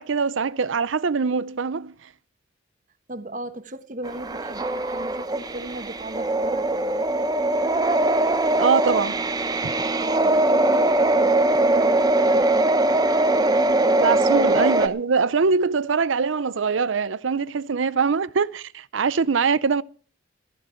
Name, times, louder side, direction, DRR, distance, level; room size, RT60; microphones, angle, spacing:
voice 1, 0.0-1.9 8.6-9.2 9.6-9.7 14.0-19.8, right 5 dB, 80° right, 0.6 m, -23 dB
voice 2, 3.1-6.7 10.0-12.5, right 1 dB, 40° right, 1.2 m, -35 dB
sound 1, 4.0-14.9, right 2 dB, 20° right, 0.8 m, -21 dB
15.0 x 14.5 x 4.4 m
head